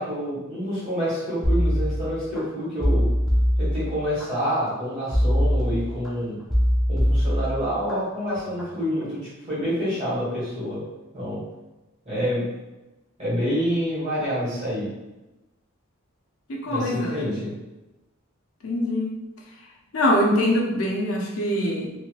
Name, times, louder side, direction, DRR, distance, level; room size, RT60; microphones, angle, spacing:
voice 1, 0.0-3.0 3.6-6.4 6.9-10.8 11.1-11.4 12.0-12.5 13.2-14.9 16.6-17.5, equal, 30° right, -9 dB, 1.4 m, -27 dB
sound 1, 1.4-2.4 2.8-4.3 5.1-6.1 6.5-8.0 8.4-8.7, equal, ahead, 0.4 m, -22 dB
voice 2, 16.5-17.3 18.6-19.2 19.9-21.9, left 1 dB, 70° left, -1 dB, 0.6 m, -23 dB
3.1 x 2.7 x 2.3 m, 1.0 s
head